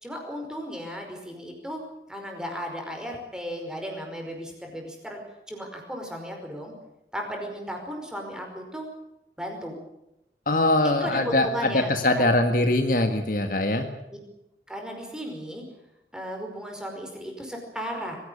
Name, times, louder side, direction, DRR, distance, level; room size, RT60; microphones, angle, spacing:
voice 1, 0.0-1.8 2.1-5.2 5.5-6.7 7.1-8.9 9.4-9.7 10.8-12.2 14.7-15.6 16.1-18.2, equal, 5° right, 2 dB, 5.1 m, -35 dB
voice 2, 10.5-13.9, left 1 dB, 50° left, 6 dB, 1.8 m, -22 dB
23.0 x 16.5 x 8.7 m, 0.89 s
head